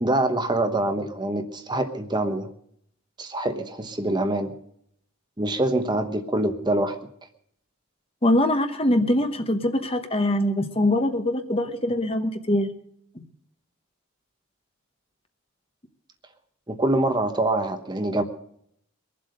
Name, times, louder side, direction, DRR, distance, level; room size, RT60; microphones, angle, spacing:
voice 1, 0.0-2.5 3.2-4.5 5.4-7.0 16.7-18.2, right 1 dB, 20° right, 8 dB, 0.9 m, -25 dB
voice 2, 8.2-12.7 13.1-13.2, left 1 dB, 25° left, 8 dB, 1.0 m, -23 dB
23.0 x 7.8 x 6.5 m, 0.70 s
head